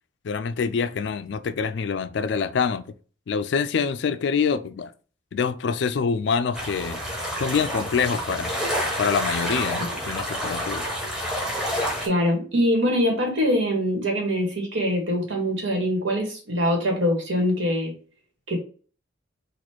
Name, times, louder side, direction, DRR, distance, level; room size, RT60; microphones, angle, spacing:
voice 1, 0.2-2.8 3.3-4.9 5.3-7.0 7.4-8.5 9.0-10.8, left 6 dB, 60° left, 0.3 m, -25 dB
sound 1, 6.5-12.1, equal, 5° right, 1.0 m, -28 dB
voice 2, 12.0-17.9 18.5-18.6, equal, 70° right, 1.7 m, -23 dB
4.2 x 2.5 x 4.5 m
head